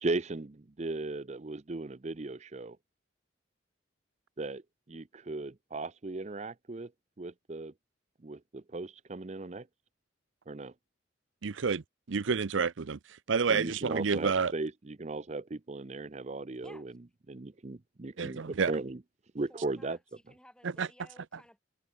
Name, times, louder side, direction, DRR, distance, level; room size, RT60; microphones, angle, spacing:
voice 1, 0.0-2.8 4.4-4.6 4.9-6.9 7.2-7.7 8.2-9.7 10.5-10.7 13.5-16.9 17.3-19.0 19.3-20.0, right 2 dB, 35° right, 0.6 m, -37 dB
voice 2, 11.4-11.8 12.1-13.0 13.3-14.5 18.2-18.7 20.6-20.9, right 5 dB, 75° right, 0.6 m, -29 dB
voice 3, 19.5-20.0 20.3-21.6, left 1 dB, 5° left, 3.5 m, -56 dB
head